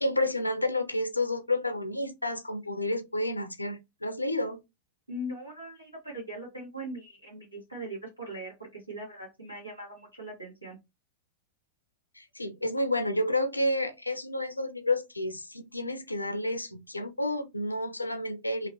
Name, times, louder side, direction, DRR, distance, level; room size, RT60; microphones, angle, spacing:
voice 1, 0.0-4.6 12.2-18.7, left 1 dB, 85° left, 0.4 m, -30 dB
voice 2, 5.1-10.8, right 1 dB, 90° right, 1.5 m, -40 dB
2.9 x 2.7 x 2.8 m
figure-of-eight pair, 90°, 0 cm